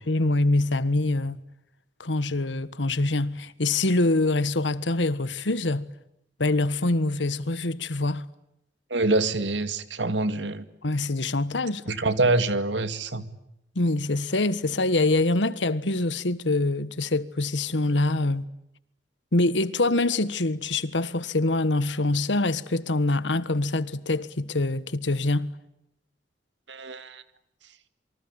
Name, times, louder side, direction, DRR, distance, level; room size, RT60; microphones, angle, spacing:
voice 1, 0.1-1.4 2.0-5.9 6.4-8.3 10.8-11.8 13.7-18.4 19.3-25.5, left 2 dB, 85° left, 1.4 m, -25 dB
voice 2, 8.9-10.7 11.9-13.3 26.7-27.2, right 2 dB, 85° right, 2.3 m, -25 dB
27.5 x 25.0 x 8.7 m
head